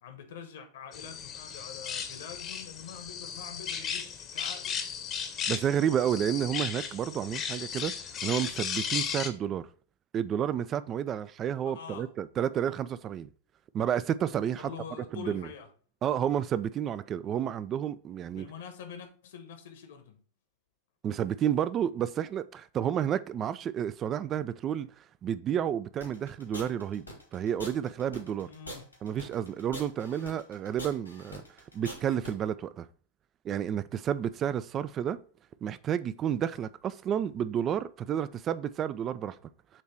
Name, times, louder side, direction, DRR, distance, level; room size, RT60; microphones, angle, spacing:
voice 1, 0.0-5.0 11.6-12.1 14.6-15.7 18.4-20.2 28.4-28.9, left 7 dB, 60° left, 1.2 m, -45 dB
sound 1, 0.9-9.3, left 7 dB, 30° left, 0.9 m, -36 dB
voice 2, 5.5-7.9 8.2-9.7 10.1-13.3 13.7-14.7 15.1-15.5 16.0-18.5 21.0-24.9 25.2-27.1 27.3-28.5 29.0-31.4 31.7-32.9 33.4-35.2 35.6-39.4, right 9 dB, 30° right, 0.4 m, -30 dB
sound 2, 26.0-32.3, equal, 85° left, 2.0 m, -43 dB
7.4 x 3.1 x 4.7 m
figure-of-eight pair, 90°, 0 cm